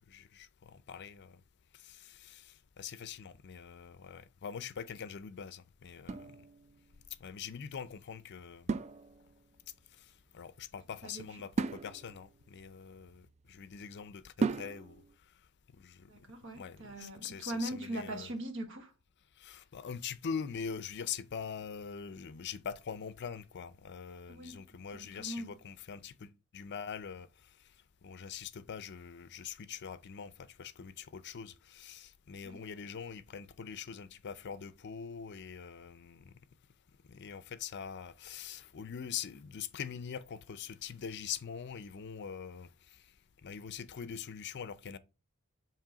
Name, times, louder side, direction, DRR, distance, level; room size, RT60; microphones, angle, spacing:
voice 1, 0.1-1.4 1.7-6.3 7.2-8.7 10.3-15.0 15.8-16.1 16.5-18.3 19.4-27.3 28.0-36.3 37.1-43.0 43.4-45.0, left 7 dB, 55° left, 0.5 m, -43 dB
sound 1, 6.0-7.0 8.7-9.6 11.6-13.6 14.4-15.1, right 4 dB, 30° right, 0.3 m, -37 dB
voice 2, 16.1-18.9 24.3-25.5 32.4-32.6, right 1 dB, 60° right, 1.3 m, -41 dB
7.4 x 3.0 x 5.0 m
head